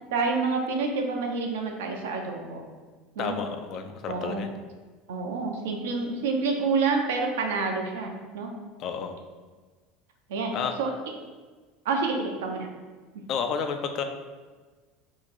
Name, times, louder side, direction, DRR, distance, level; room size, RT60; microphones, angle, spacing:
voice 1, 0.1-2.6 3.2-3.4 4.1-4.5 5.1-8.5 10.3-10.5 10.8-10.9 11.8-12.7, right 4 dB, 70° right, 2 dB, 0.6 m, -28 dB
voice 2, 3.2-4.5 8.8-9.2 10.5-10.7 13.3-14.0, left 6 dB, 50° left, 6 dB, 0.4 m, -31 dB
2.9 x 2.5 x 4.0 m, 1.4 s
figure-of-eight pair, 75°, 0 cm